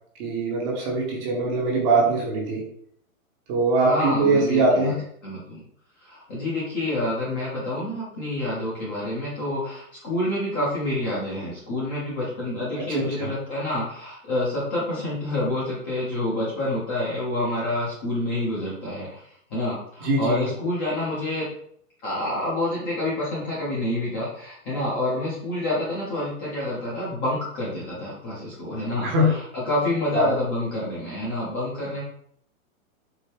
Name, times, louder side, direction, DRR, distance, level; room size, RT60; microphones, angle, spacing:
voice 1, 0.2-2.6 3.5-5.0 12.9-13.3 20.0-20.5 29.0-29.3 30.1-30.3, right 2 dB, 20° right, -2 dB, 0.7 m, -22 dB
voice 2, 3.8-5.0 5.2-5.6 6.0-21.5 22.0-32.0, left 1 dB, 15° left, -7 dB, 0.5 m, -28 dB
4.5 x 2.0 x 3.2 m, 0.65 s
hypercardioid pair, 150°, 42 cm